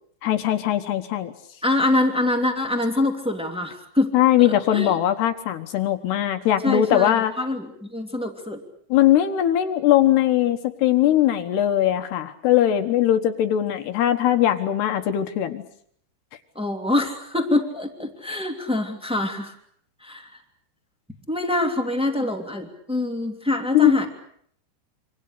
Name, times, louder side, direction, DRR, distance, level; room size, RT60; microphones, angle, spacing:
voice 1, 0.2-1.3 4.1-7.3 8.9-15.6 23.7-23.9, left 12 dB, 70° left, 7 dB, 2.9 m, -20 dB
voice 2, 1.6-4.1 4.4-4.5 4.7-4.9 6.6-8.6 16.5-19.5 20.0-20.3 21.3-24.1, left 2 dB, 5° right, 2 dB, 1.1 m, -24 dB
27.5 x 25.5 x 6.7 m, 0.65 s
omnidirectional pair, 5.8 m